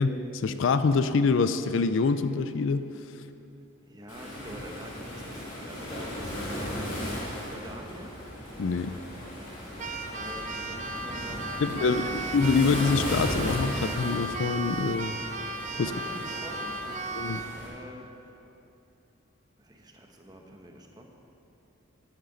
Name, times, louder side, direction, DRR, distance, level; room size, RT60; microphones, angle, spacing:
voice 1, 0.0-2.9 8.6-9.0 11.6-15.1 15.8-15.9 17.1-17.4, left 4 dB, 60° left, 11 dB, 0.4 m, -25 dB
voice 2, 3.8-8.2 10.1-12.3 15.8-18.4 19.6-21.0, equal, 20° right, 1 dB, 0.9 m, -46 dB
Waves surf, 4.1-17.7, equal, 35° left, 2.8 m, -36 dB
Keyboard (musical), 9.8-17.5, right 2 dB, 35° right, 0.5 m, -36 dB
13.0 x 11.0 x 4.0 m, 3.0 s
head